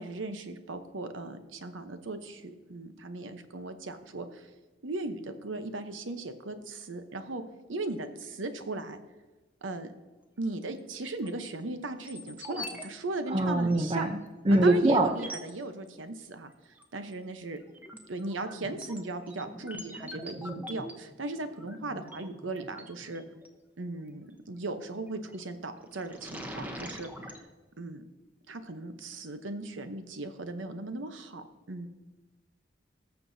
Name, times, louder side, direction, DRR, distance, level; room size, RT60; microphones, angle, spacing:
voice 1, 0.0-4.5 4.8-7.4 7.7-9.0 9.6-9.9 10.4-14.1 14.5-16.5 16.9-17.6 18.1-23.2 23.8-27.1 27.8-28.0 28.5-31.9, right 2 dB, 90° right, 8 dB, 0.9 m, -37 dB
sound 1, 11.0-11.5 12.0-12.9 13.1-13.2 13.7-13.8 14.5-14.6 15.1-15.5 16.8-17.1 17.6-23.5 25.1-25.4 25.8-27.4, equal, 10° right, 0.9 m, -43 dB
voice 2, 13.3-14.1 14.5-15.1, right 2 dB, 30° right, 5 dB, 0.6 m, -23 dB
19.0 x 6.8 x 2.7 m, 1.2 s
head